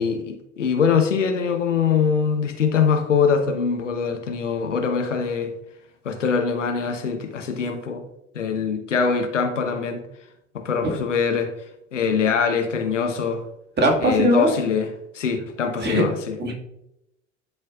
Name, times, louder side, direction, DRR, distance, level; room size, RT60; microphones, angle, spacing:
voice 1, 0.0-5.5 6.0-8.0 8.3-10.0 10.5-11.5 11.9-13.4 14.0-16.4, left 6 dB, 80° left, 0.9 m, -23 dB
voice 2, 13.8-14.5 15.8-16.0 16.4-16.5, equal, 30° right, 1.9 m, -19 dB
11.5 x 4.4 x 2.4 m
figure-of-eight pair, 70°, 36 cm